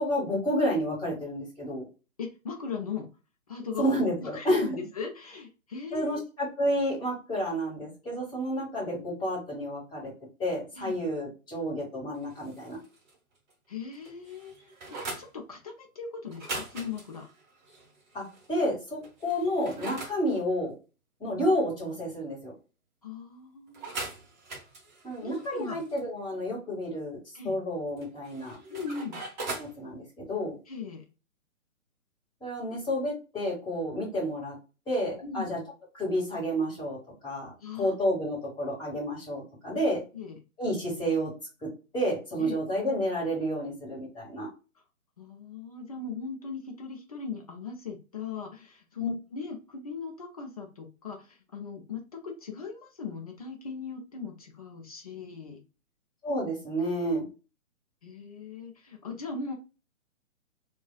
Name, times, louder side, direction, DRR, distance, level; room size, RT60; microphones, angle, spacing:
voice 1, 0.0-1.9 3.8-4.7 5.9-10.1 10.4-12.8 18.1-18.2 18.5-20.7 21.2-22.5 25.0-28.6 29.5-30.5 32.4-34.5 34.9-35.6 35.9-37.0 37.2-37.5 37.8-40.0 40.6-41.3 41.6-41.7 41.9-44.5 49.0-49.1 56.2-57.2, equal, 10° left, -4 dB, 1.4 m, -30 dB
voice 2, 2.2-3.1 3.5-3.9 4.2-6.2 10.7-11.0 13.7-14.5 14.9-17.3 23.0-24.0 25.2-25.8 27.3-27.6 28.7-29.2 30.7-31.0 35.2-35.6 37.6-37.9 40.1-40.4 42.4-42.6 45.2-55.6 58.0-59.5, left 5 dB, 30° left, 2 dB, 0.5 m, -39 dB
sound 1, 12.2-13.2 13.5-13.6 13.9-15.3 16.3-18.5 19.0-20.2 23.7-26.0 28.0-29.7, right 2 dB, 35° right, 1.0 m, -41 dB
3.4 x 2.3 x 2.2 m, 0.31 s
figure-of-eight pair, 130°, 41 cm